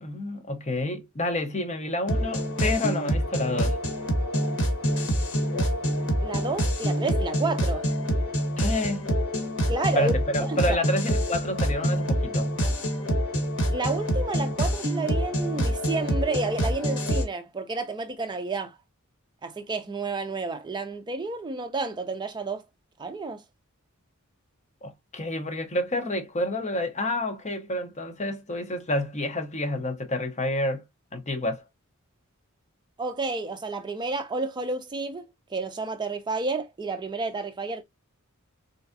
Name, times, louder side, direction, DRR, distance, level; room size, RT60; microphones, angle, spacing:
voice 1, 0.0-3.8 8.6-9.1 9.9-12.5 24.8-30.8 31.1-31.6, left 1 dB, 30° left, 0.9 m, -29 dB
sound 1, 2.1-17.2, equal, 60° left, 1.4 m, -26 dB
voice 2, 6.2-7.9 9.7-10.1 10.4-10.8 13.7-18.8 19.4-22.6 23.0-23.4 33.0-35.2 35.5-37.8, right 3 dB, 20° right, 0.4 m, -30 dB
4.0 x 3.4 x 2.5 m
head